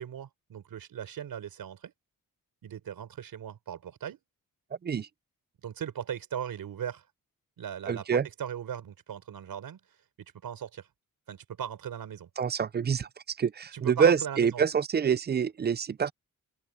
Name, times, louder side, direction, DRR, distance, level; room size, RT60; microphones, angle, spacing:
voice 1, 0.0-1.9 2.6-4.2 5.6-7.0 7.6-9.8 10.4-10.9 11.3-12.3 13.7-14.6, right 9 dB, 85° right, 4.6 m, -38 dB
voice 2, 7.9-8.3 12.4-13.1 13.4-16.1, right 7 dB, 30° right, 0.4 m, -26 dB
open air
wide cardioid pair, 140°, 34 cm